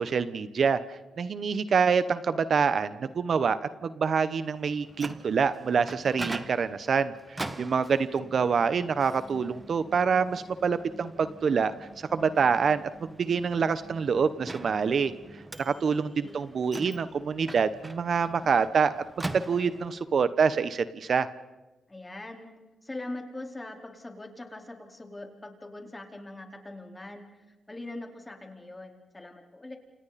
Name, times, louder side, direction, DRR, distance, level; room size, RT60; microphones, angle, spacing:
voice 1, 0.0-11.7 12.1-15.1 15.6-18.9 19.3-21.3, right 6 dB, 60° right, 13 dB, 1.1 m, -26 dB
Microwave oven, 4.6-20.1, right 2 dB, 20° right, 1.6 m, -43 dB
voice 2, 15.6-16.4 21.9-22.5 22.8-29.8, left 2 dB, 20° left, 2 dB, 4.4 m, -42 dB
29.5 x 28.5 x 4.3 m, 1.1 s
cardioid pair, 75°, 0 cm